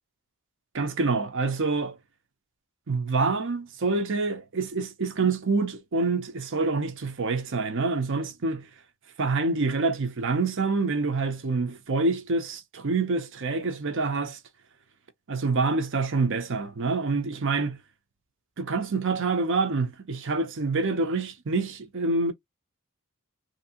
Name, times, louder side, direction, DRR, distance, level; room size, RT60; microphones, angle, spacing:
voice 1, 0.7-2.0 2.9-8.7 9.2-14.4 15.3-17.8 18.6-22.3, right 3 dB, 60° right, 0.7 m, -26 dB
2.9 x 2.7 x 2.8 m
head